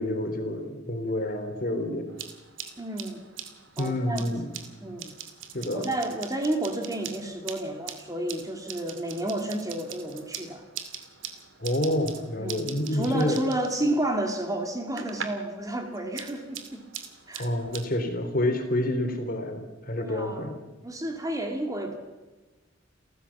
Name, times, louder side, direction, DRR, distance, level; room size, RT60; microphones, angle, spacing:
voice 1, 0.0-2.1 3.8-4.5 5.5-5.9 11.6-13.4 17.4-20.6, left 1 dB, 50° left, 6 dB, 3.5 m, -28 dB
sound 1, 2.1-15.5 15.8-17.8, right 8 dB, 80° right, 2.5 m, -42 dB
voice 2, 2.8-3.2 3.8-4.3 4.8-5.1 5.7-10.6 12.4-16.8 17.3-17.5 19.9-20.6 20.8-22.0, right 1 dB, 20° right, 4 dB, 2.4 m, -31 dB
29.5 x 14.5 x 7.3 m, 1.2 s
head